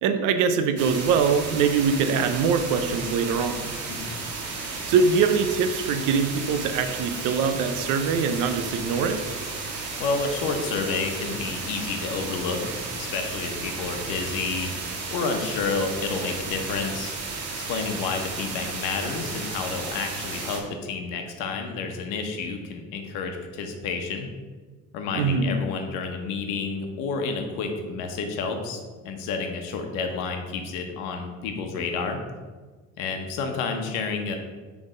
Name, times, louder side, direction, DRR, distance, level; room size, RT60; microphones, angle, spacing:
voice 1, 0.0-3.7 4.9-9.2 25.1-25.6, right 5 dB, 70° right, 8 dB, 0.7 m, -23 dB
sound 1, 0.8-20.6, right 3 dB, 50° right, 1.5 m, -33 dB
voice 2, 3.9-4.3 10.0-14.7 15.1-17.1 17.7-24.3 24.9-32.2 33.0-34.4, left 4 dB, 80° left, 4 dB, 1.1 m, -30 dB
6.5 x 3.5 x 5.0 m, 1.4 s
cardioid pair, 135°, 32 cm